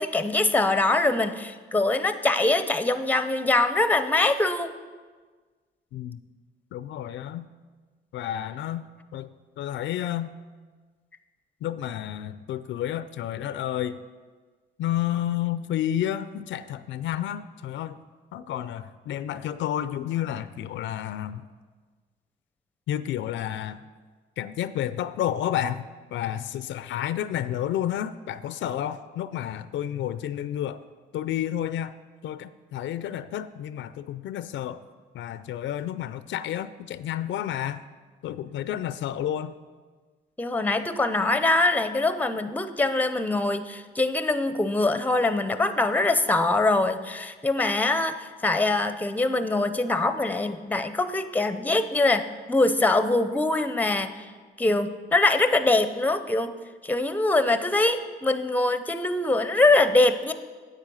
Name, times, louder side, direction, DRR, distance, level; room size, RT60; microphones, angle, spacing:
voice 1, 0.0-4.8 40.4-54.3 54.6-56.5 56.8-60.3, left 2 dB, 10° left, 11 dB, 0.6 m, -23 dB
voice 2, 6.7-7.5 8.1-8.9 9.1-9.3 9.6-10.3 11.6-14.0 14.8-18.0 18.3-21.5 22.9-23.9 24.4-25.8 26.1-30.8 31.1-32.0 32.2-34.8 35.1-37.8 38.2-39.6, left 11 dB, 70° left, 14 dB, 0.4 m, -30 dB
9.0 x 8.1 x 5.5 m, 1.4 s
cardioid pair, 90°, 20 cm